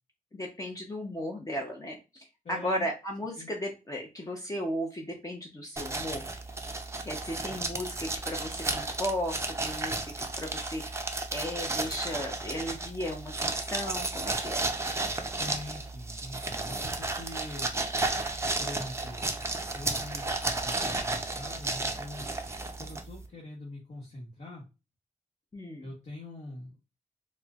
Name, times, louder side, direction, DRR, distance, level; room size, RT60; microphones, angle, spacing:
voice 1, 0.3-6.2 7.1-11.0 11.3-14.6 25.5-25.9, equal, 25° left, 0 dB, 0.7 m, -35 dB
voice 2, 2.4-2.9 3.4-3.5 15.4-17.8 18.6-19.3 19.7-22.3 22.7-24.6 25.8-26.8, left 1 dB, 60° left, -4 dB, 1.3 m, -43 dB
sound 1, 5.8-23.3, right 2 dB, 20° right, 0.5 m, -33 dB
4.2 x 2.1 x 2.3 m, 0.27 s
wide cardioid pair, 100°, 14 cm